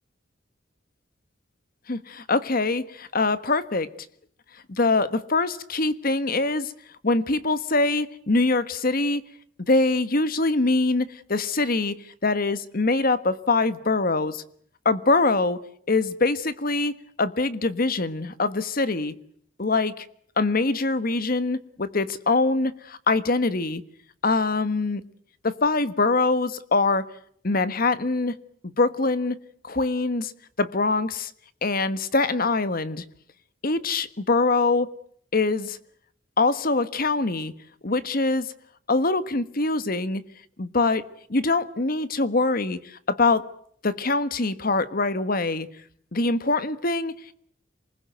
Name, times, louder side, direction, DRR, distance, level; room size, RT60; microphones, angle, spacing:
voice 1, 1.9-3.9 4.7-6.7 7.0-9.2 9.6-11.9 12.2-14.4 14.8-15.6 15.9-19.1 19.6-20.0 20.4-23.8 24.2-25.0 25.4-27.1 27.4-28.3 28.6-29.4 29.6-30.3 30.6-31.3 31.6-33.0 33.6-34.9 35.3-35.8 36.4-37.5 37.8-38.5 38.9-40.2 40.6-43.5 43.8-45.7 46.1-47.1, left 3 dB, 50° left, 1.4 m, -23 dB
27.0 x 20.5 x 9.2 m
head